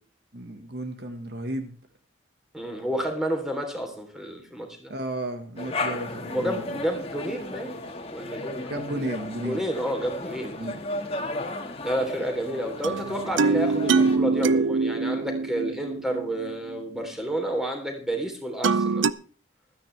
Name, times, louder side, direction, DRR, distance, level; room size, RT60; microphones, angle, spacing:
voice 1, 0.3-1.7 4.9-6.8 8.7-9.6 10.6-10.8, right 1 dB, 60° right, 1.6 m, -33 dB
voice 2, 2.5-4.9 6.3-7.8 8.1-8.7 9.4-10.6 11.8-19.1, right 1 dB, 5° right, 3.4 m, -30 dB
sound 1, 5.6-14.2, left 2 dB, 30° left, 1.8 m, -34 dB
sound 2, 12.8-16.8 18.6-19.1, right 4 dB, 85° right, 0.6 m, -24 dB
16.0 x 13.0 x 3.4 m
head